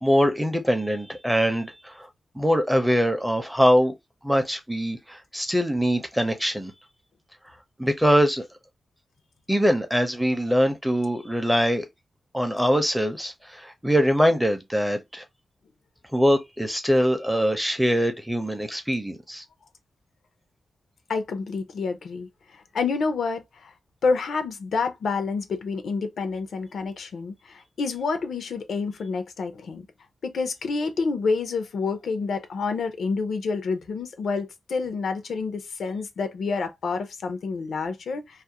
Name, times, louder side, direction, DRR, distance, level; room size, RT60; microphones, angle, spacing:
voice 1, 0.0-2.1 2.4-3.9 4.2-6.7 7.8-8.5 9.5-11.9 12.3-15.2 16.1-19.4, equal, 5° right, 0.5 m, -23 dB
voice 2, 21.1-23.7 24.0-29.8 30.2-38.4, left 4 dB, 85° left, 0.5 m, -28 dB
2.4 x 2.1 x 2.7 m
wide cardioid pair, 125°, 0 cm